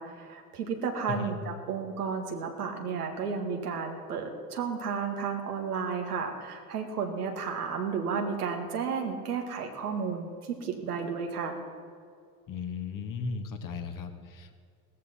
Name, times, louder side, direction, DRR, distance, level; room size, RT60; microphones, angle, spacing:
voice 1, 0.0-11.6, right 5 dB, 85° right, 2 dB, 1.8 m, -33 dB
voice 2, 12.5-14.6, left 4 dB, 45° left, 5 dB, 1.8 m, -36 dB
17.0 x 14.0 x 4.3 m, 2.3 s
hypercardioid pair, 70°, 45 cm